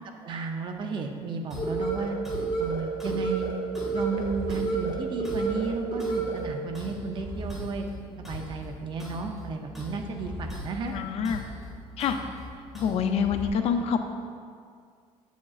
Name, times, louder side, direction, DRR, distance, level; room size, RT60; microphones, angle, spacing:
voice 1, 0.2-2.2 2.6-3.5 3.9-7.9 8.2-11.0, right 4 dB, 40° right, 4 dB, 0.6 m, -33 dB
sound 1, 1.5-13.5, left 1 dB, ahead, 1.5 m, -41 dB
sound 2, 1.6-6.6, right 4 dB, 35° left, 0.9 m, -30 dB
voice 2, 10.9-11.4 12.0-12.2 12.7-14.0, left 7 dB, 55° left, 7 dB, 0.5 m, -26 dB
8.5 x 7.1 x 2.4 m, 2.1 s
cardioid pair, 160°, 13 cm